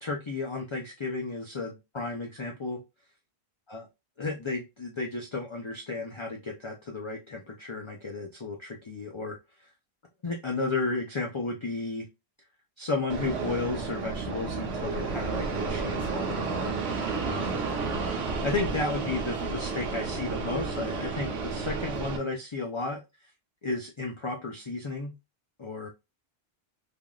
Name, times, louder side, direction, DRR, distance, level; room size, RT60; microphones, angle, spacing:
voice 1, 0.0-2.8 3.7-3.9 4.2-9.4 10.2-12.1 12.8-16.8 17.2-17.6 18.4-23.0 23.6-25.1 25.6-25.9, left 3 dB, 35° left, 1 dB, 0.5 m, -33 dB
Fixed-wing aircraft airplane, 13.1-22.2, right 4 dB, 85° right, 1.0 m, -31 dB
3.5 x 2.4 x 2.3 m, 0.24 s
omnidirectional pair, 1.0 m